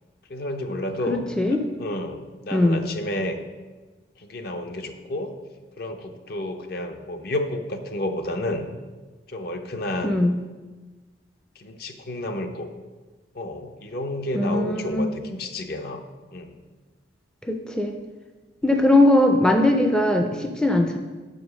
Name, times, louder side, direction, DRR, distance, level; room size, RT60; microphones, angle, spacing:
voice 1, 0.3-1.2 1.8-3.4 4.2-5.3 5.8-8.7 9.3-10.2 11.6-12.7 13.3-16.0 16.3-16.5 18.6-18.8, left 1 dB, 55° left, 6 dB, 0.6 m, -30 dB
voice 2, 1.1-1.6 2.5-2.8 10.0-10.4 14.3-15.1 17.4-18.0 18.6-21.0, left 1 dB, 5° left, 4 dB, 0.4 m, -20 dB
5.8 x 5.1 x 6.2 m, 1.3 s
head